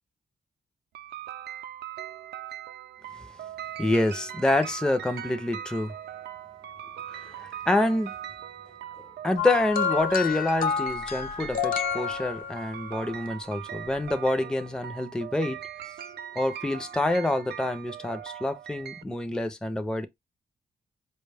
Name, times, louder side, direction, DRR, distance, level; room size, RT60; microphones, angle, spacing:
sound 1, 0.9-19.0, right 10 dB, 90° right, 0.4 m, -41 dB
voice 1, 3.8-5.9 7.1-8.1 9.2-15.6 16.4-20.1, left 1 dB, 5° left, 0.4 m, -27 dB
sound 2, 9.4-12.9 14.0-14.1, left 7 dB, 55° left, 0.6 m, -29 dB
4.7 x 2.2 x 3.3 m
wide cardioid pair, 115°, 17 cm